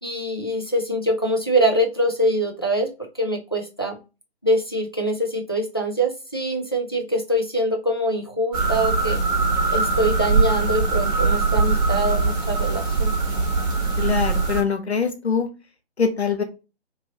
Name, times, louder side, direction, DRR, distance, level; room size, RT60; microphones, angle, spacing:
voice 1, 0.0-2.9 3.2-4.0 4.4-9.2 9.7-13.1, right 1 dB, 25° left, 1 dB, 0.4 m, -24 dB
sound 1, 8.5-14.6, right 4 dB, 20° right, 1.0 m, -21 dB
voice 2, 14.0-15.5 16.0-16.4, left 6 dB, 75° left, 5 dB, 1.0 m, -23 dB
3.0 x 2.7 x 2.7 m, 0.29 s
figure-of-eight pair, 145°, 33 cm